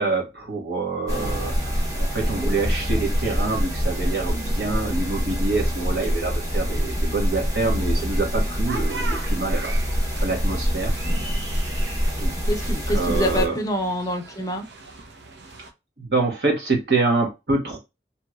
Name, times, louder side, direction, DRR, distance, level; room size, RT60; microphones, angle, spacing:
voice 1, 0.0-9.8 10.2-10.9 12.2-12.3 12.9-13.6 16.0-17.8, right 3 dB, 70° right, 1 dB, 1.2 m, -26 dB
sound 1, 1.1-13.5, equal, 20° right, 0.7 m, -25 dB
sound 2, 8.7-15.7, right 3 dB, 90° right, 0.7 m, -39 dB
voice 2, 12.5-14.7, equal, 20° left, 4 dB, 0.5 m, -26 dB
2.9 x 2.9 x 2.3 m, 0.24 s
head